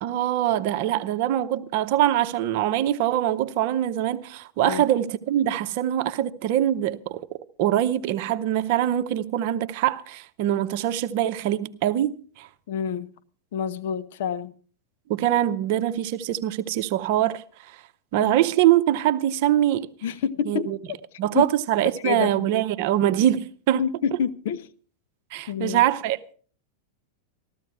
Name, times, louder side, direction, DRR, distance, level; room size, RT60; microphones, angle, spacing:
voice 1, 0.0-7.3 7.6-12.5 15.1-17.8 18.1-19.9 20.5-20.8 21.2-23.8 25.3-26.3, right 12 dB, 45° right, 0.8 m, -23 dB
voice 2, 12.7-13.1 13.5-14.5 18.2-18.3 20.0-21.0 21.3-21.4 22.0-22.5 23.8-24.7 25.5-25.8, left 7 dB, 55° left, 0.7 m, -28 dB
14.5 x 13.5 x 4.7 m
figure-of-eight pair, 90°, 0 cm